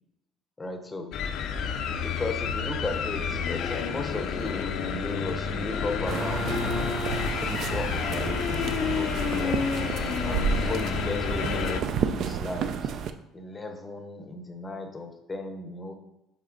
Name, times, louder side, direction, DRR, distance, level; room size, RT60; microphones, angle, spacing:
voice 1, 0.6-1.2 2.0-6.7 7.4-8.4 8.8-9.7 10.2-12.9 13.3-15.9, left 2 dB, 15° left, 5 dB, 0.7 m, -36 dB
sound 1, 1.1-11.8, left 6 dB, 55° left, 0.5 m, -29 dB
sound 2, 6.1-13.1, right 7 dB, 50° right, 0.4 m, -31 dB
5.8 x 4.2 x 3.8 m, 0.94 s
cardioid pair, 150°, 0 cm